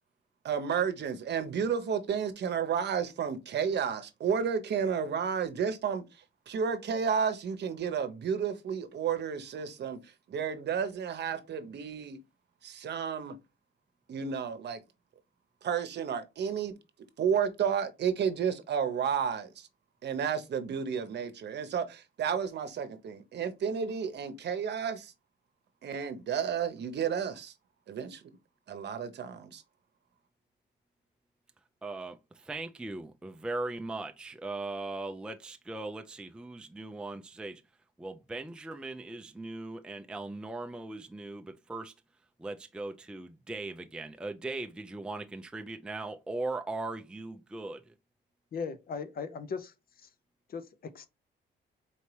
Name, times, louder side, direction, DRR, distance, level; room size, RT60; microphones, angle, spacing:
voice 1, 0.4-6.0 6.5-12.2 12.6-13.4 14.1-14.8 15.6-16.7 17.2-19.7 20.0-25.1 25.8-27.5 27.9-28.2 28.7-29.6, right 7 dB, 60° right, 0.8 m, -32 dB
voice 2, 31.8-37.6 38.0-41.9 42.4-47.9, right 2 dB, 5° right, 0.4 m, -39 dB
voice 3, 48.5-49.7 50.0-50.1 50.5-51.1, left 5 dB, 50° left, 0.6 m, -38 dB
4.4 x 2.8 x 3.2 m
cardioid pair, 90°, 20 cm